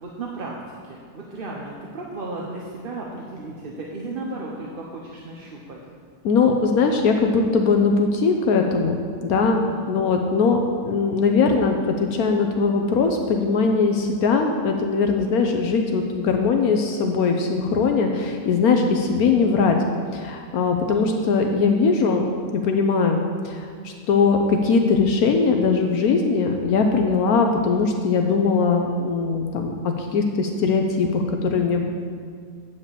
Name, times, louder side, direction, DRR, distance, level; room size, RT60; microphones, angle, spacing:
voice 1, 0.0-0.6 0.8-5.8 9.7-9.9, right 2 dB, 45° right, -2 dB, 0.8 m, -34 dB
voice 2, 6.2-9.6 9.9-19.8 20.1-22.2 22.5-31.8, left 4 dB, 75° left, 3 dB, 1.1 m, -20 dB
8.6 x 4.9 x 7.3 m, 2.1 s
omnidirectional pair, 1.6 m